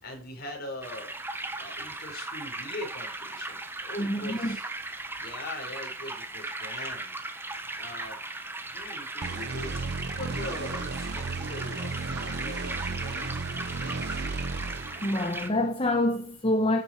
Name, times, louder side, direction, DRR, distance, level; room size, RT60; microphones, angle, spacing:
voice 1, 0.0-1.1 1.6-4.7 5.2-7.2 7.8-8.2 8.7-13.3 13.7-14.1, left 2 dB, 50° left, 5.1 m, -41 dB
sound 1, 0.8-15.5, right 2 dB, 10° right, 1.3 m, -37 dB
voice 2, 4.0-4.6 15.0-16.8, left 1 dB, 25° left, 1.2 m, -26 dB
sound 2, 9.2-15.7, right 3 dB, 50° right, 0.7 m, -35 dB
13.0 x 7.8 x 4.8 m
head